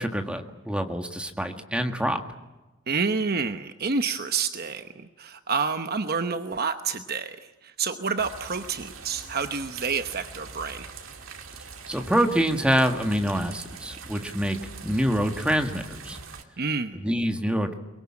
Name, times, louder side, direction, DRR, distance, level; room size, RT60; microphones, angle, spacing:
voice 1, 0.0-2.2 11.9-14.6 14.8-16.2 16.9-17.7, equal, 5° right, 5 dB, 1.7 m, -26 dB
voice 2, 2.9-7.4 7.6-10.9 16.6-17.0, right 5 dB, 50° right, 8 dB, 1.0 m, -28 dB
sound 1, 8.2-16.4, right 4 dB, 90° right, 2.5 m, -43 dB
23.0 x 23.0 x 8.7 m, 1.1 s
head